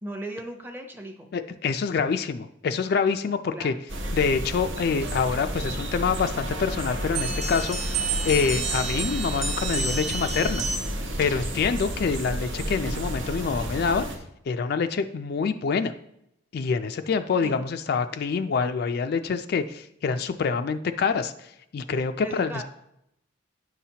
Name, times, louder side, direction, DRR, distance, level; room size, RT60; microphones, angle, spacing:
voice 1, 0.0-1.3 3.5-3.8 17.4-17.6 22.2-22.6, right 1 dB, 10° right, 4 dB, 0.7 m, -37 dB
voice 2, 1.3-3.7 4.1-7.8 8.2-10.6 11.2-14.1 14.5-15.9 16.5-22.6, left 5 dB, 55° left, 9 dB, 0.3 m, -26 dB
sound 1, 3.9-14.2, right 1 dB, 85° right, 1.1 m, -31 dB
sound 2, 4.9-7.0, right 4 dB, 55° right, 0.4 m, -44 dB
sound 3, 7.1-11.1, right 4 dB, 35° right, 1.2 m, -30 dB
9.3 x 5.7 x 2.8 m, 0.79 s
head